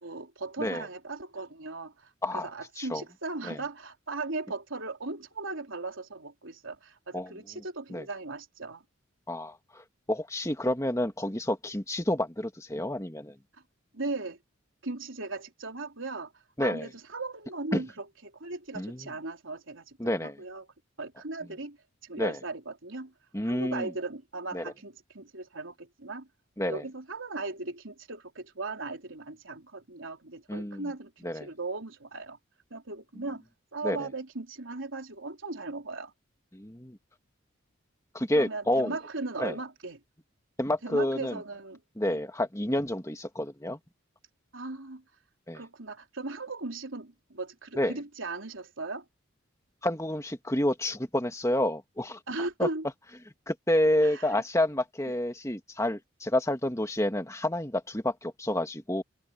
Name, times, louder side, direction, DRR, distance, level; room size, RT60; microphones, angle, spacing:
voice 1, 0.0-8.8 13.9-14.4 14.8-16.3 16.6-20.6 21.0-21.8 22.0-23.1 23.4-26.3 26.7-32.4 32.7-33.4 33.7-36.1 38.3-40.0 40.8-42.2 44.5-45.0 45.5-49.1 52.3-52.9 54.0-54.4 55.1-55.2, right 3 dB, 75° right, 3.6 m, -38 dB
voice 2, 9.3-13.3 16.6-16.9 17.7-17.8 18.7-19.1 20.0-20.4 22.2-22.4 23.3-23.9 24.5-24.7 26.6-26.8 30.5-30.9 31.2-31.5 33.8-34.1 36.5-37.0 38.1-39.0 39.4-39.5 40.6-41.4 42.0-43.8 45.5-45.6 47.8-47.9 49.8-52.2 52.6-52.7 53.5-59.0, left 1 dB, 15° left, 2.1 m, -29 dB
head